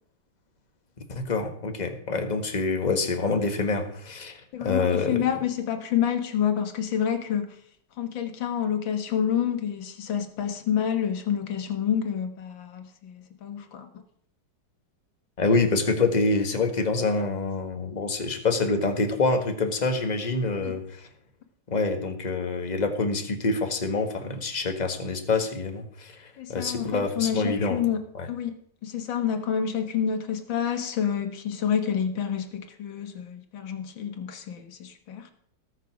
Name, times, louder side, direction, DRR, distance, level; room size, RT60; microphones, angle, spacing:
voice 1, 1.1-5.2 15.4-21.1 21.7-27.8 28.1-28.3, left 3 dB, 25° left, 6 dB, 1.5 m, -26 dB
voice 2, 4.5-7.6 8.0-13.9 20.6-20.7 26.4-28.0 28.3-28.6 28.8-35.3, left 8 dB, 75° left, 7 dB, 2.2 m, -28 dB
18.5 x 6.7 x 6.1 m, 0.63 s
omnidirectional pair, 2.2 m